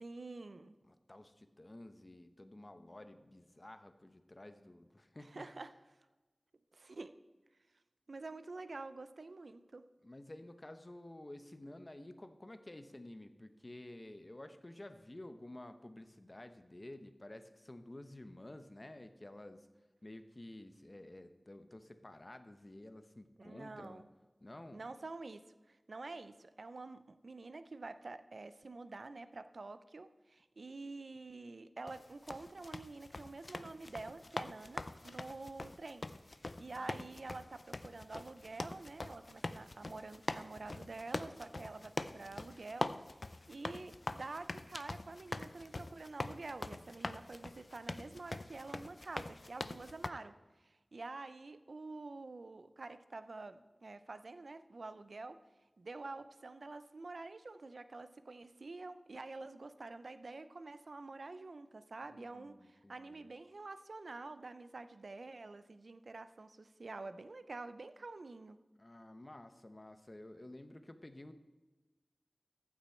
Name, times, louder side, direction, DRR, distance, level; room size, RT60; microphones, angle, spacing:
voice 1, 0.0-0.7 5.2-5.7 6.7-7.1 8.1-9.8 23.4-24.1 24.7-50.4 50.6-55.4 55.8-68.6, right 3 dB, 80° right, 12 dB, 0.5 m, -48 dB
voice 2, 0.9-5.5 10.0-19.7 20.0-24.0 24.4-24.8 36.7-37.0 62.0-63.3 68.8-71.3, left 1 dB, 35° left, 9 dB, 0.8 m, -52 dB
sound 1, 31.9-50.1, left 2 dB, 55° left, 0.4 m, -43 dB
14.5 x 6.1 x 4.4 m, 1.2 s
wide cardioid pair, 50°, 0 cm